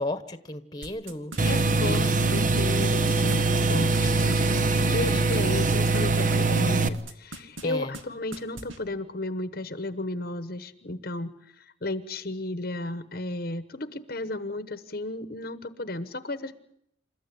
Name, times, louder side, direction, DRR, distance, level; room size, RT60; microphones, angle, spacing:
voice 1, 0.0-1.5 1.8-2.2 7.6-7.9, left 1 dB, 20° left, 11 dB, 1.3 m, -34 dB
sound 1, 0.8-6.6 6.9-7.7 7.9-8.0 8.3-8.8, right 2 dB, 75° right, 2.4 m, -40 dB
voice 2, 1.4-16.5, left 2 dB, 50° left, 11 dB, 1.1 m, -34 dB
sound 2, 1.4-6.9, right 3 dB, 40° right, 1.0 m, -23 dB
28.5 x 14.0 x 9.9 m, 0.77 s
head